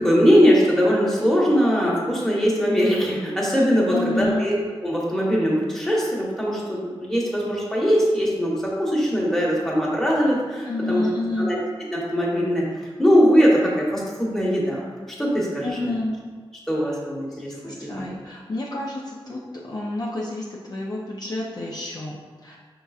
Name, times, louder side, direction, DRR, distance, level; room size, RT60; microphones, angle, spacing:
voice 1, 0.0-4.5 4.8-11.0 11.4-11.6 11.9-12.6 13.0-14.8 15.2-15.7 16.7-18.0, equal, 5° left, -5 dB, 1.2 m, -21 dB
voice 2, 3.9-4.5 10.7-11.5 15.6-16.2 16.8-17.0 17.3-22.6, left 2 dB, 40° left, -5 dB, 0.6 m, -29 dB
5.4 x 3.8 x 2.4 m, 1.5 s
wide cardioid pair, 75°, 10 cm